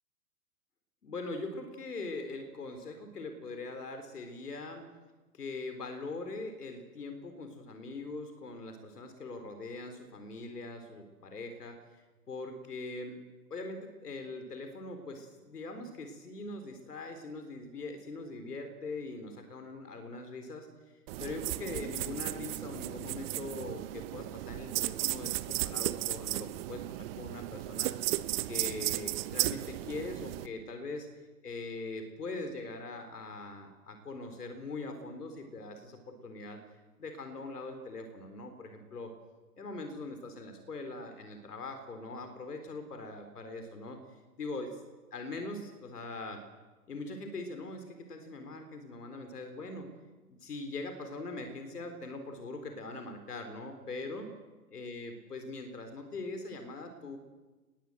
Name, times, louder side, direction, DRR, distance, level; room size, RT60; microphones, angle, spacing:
voice 1, 1.0-4.8 5.3-13.2 13.5-20.7 20.9-28.0 28.5-36.6 37.0-39.1 39.6-44.0 44.4-44.8 45.1-46.4 46.9-49.9 50.4-54.3 54.7-57.2, left 2 dB, 80° left, 7 dB, 4.2 m, -42 dB
sound 1, 21.1-30.5, right 17 dB, 40° right, 1.2 m, -35 dB
26.5 x 21.0 x 7.9 m, 1.2 s
hypercardioid pair, 115°, 46 cm